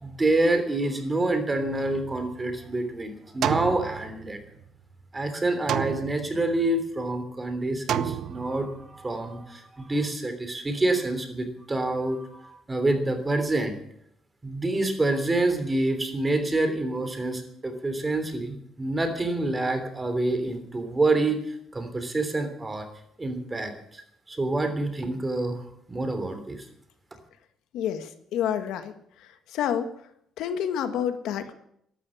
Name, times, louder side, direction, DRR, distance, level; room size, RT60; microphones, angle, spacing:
voice 1, 0.0-4.4 5.1-13.8 14.4-22.9 23.2-24.0 24.3-25.6 25.9-26.6, right 2 dB, 20° right, 8 dB, 3.1 m, -27 dB
sound 1, 1.9-2.8 3.4-4.7 5.7-6.7 7.9-8.9, right 10 dB, 70° right, 0.8 m, -31 dB
voice 2, 27.7-28.9 29.5-29.9 30.4-31.5, left 9 dB, 85° left, 9 dB, 1.6 m, -28 dB
13.5 x 12.0 x 8.6 m, 0.72 s
cardioid pair, 120°, 0 cm